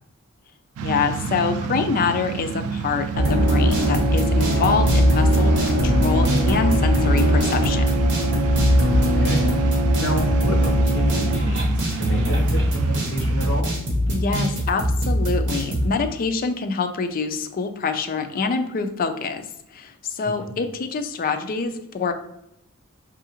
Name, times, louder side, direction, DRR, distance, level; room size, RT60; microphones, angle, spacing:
voice 1, 0.8-8.0 14.1-19.4 19.7-22.1, left 5 dB, 40° left, 7 dB, 0.4 m, -25 dB
sound 1, 0.8-13.6, right 5 dB, 85° right, 0.3 m, -31 dB
sound 2, 3.1-15.9, equal, 60° right, 1.1 m, -20 dB
voice 2, 8.7-9.4 10.0-13.7 20.2-20.5, equal, 60° left, 0 dB, 0.8 m, -29 dB
5.4 x 2.4 x 2.9 m, 0.79 s
head